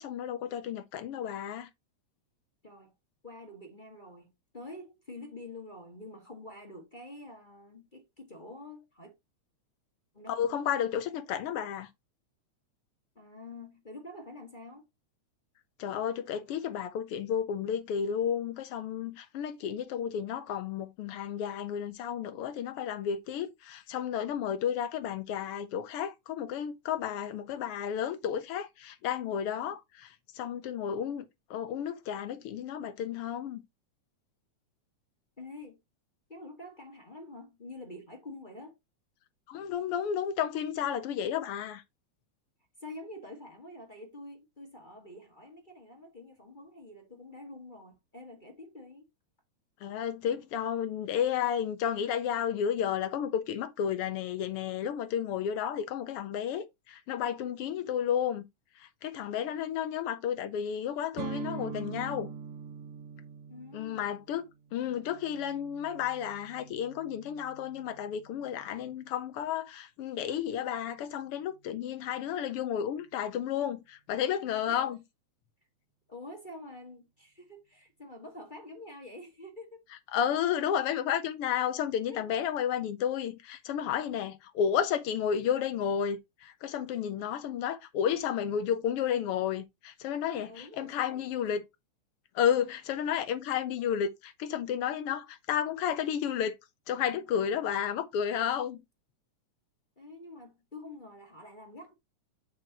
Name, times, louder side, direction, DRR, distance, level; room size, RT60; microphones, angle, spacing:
voice 1, 0.0-1.7 10.3-11.9 15.8-31.2 31.5-33.6 39.5-41.8 49.8-58.5 58.8-62.3 63.7-75.0 80.1-91.6 92.3-96.6 96.9-98.8, left 9 dB, 65° left, 1.6 m, -32 dB
voice 2, 2.6-2.9 3.2-9.1 10.1-10.4 13.1-14.8 35.4-35.8 36.3-38.7 42.8-49.1 63.5-64.1 74.7-75.0 76.1-79.8 82.1-82.4 90.4-91.6 100.0-101.9, left 2 dB, 25° left, 1.1 m, -47 dB
sound 1, 61.2-68.9, right 6 dB, 80° right, 2.3 m, -44 dB
7.8 x 6.5 x 3.0 m
omnidirectional pair, 3.5 m